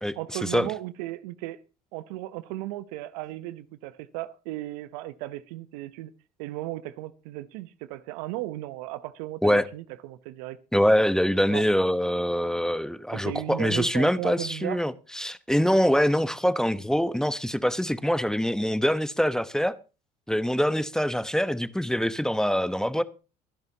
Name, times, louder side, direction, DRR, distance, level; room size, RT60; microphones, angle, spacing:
voice 1, 0.2-1.6 1.9-6.1 6.4-10.6 11.5-11.7 13.1-14.9, right 16 dB, 75° right, 0.9 m, -35 dB
voice 2, 10.7-19.7 20.3-23.0, equal, 5° left, 1.0 m, -24 dB
24.0 x 10.5 x 2.9 m
hypercardioid pair, 65°, 20 cm